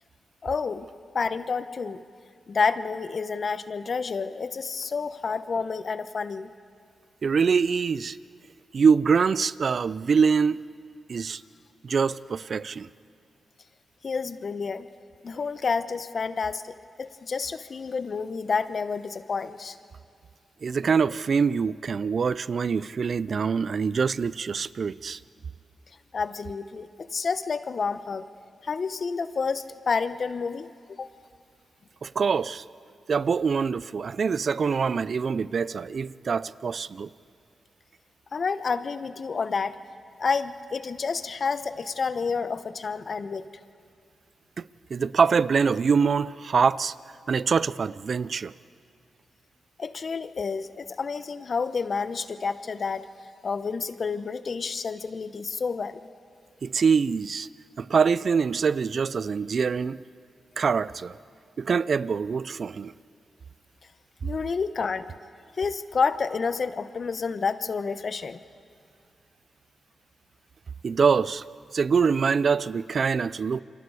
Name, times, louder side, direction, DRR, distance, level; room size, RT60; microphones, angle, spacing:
voice 1, 0.4-0.9 1.1-2.0 2.5-6.5 14.0-14.9 15.2-19.8 26.1-28.3 28.6-31.1 38.3-39.8 40.2-43.5 49.8-53.1 53.4-56.1 64.2-65.0 65.6-68.4, left 5 dB, 60° left, 1.0 m, -29 dB
voice 2, 7.2-8.2 8.7-10.6 11.1-11.4 11.8-12.9 20.6-25.2 32.0-32.6 33.1-37.1 44.6-44.7 44.9-46.9 47.3-48.5 56.6-57.5 57.8-60.0 60.6-61.2 61.6-62.9 70.8-71.4 71.7-73.6, right 5 dB, 60° right, 0.5 m, -24 dB
28.5 x 25.0 x 4.9 m
supercardioid pair, 45°, 0 cm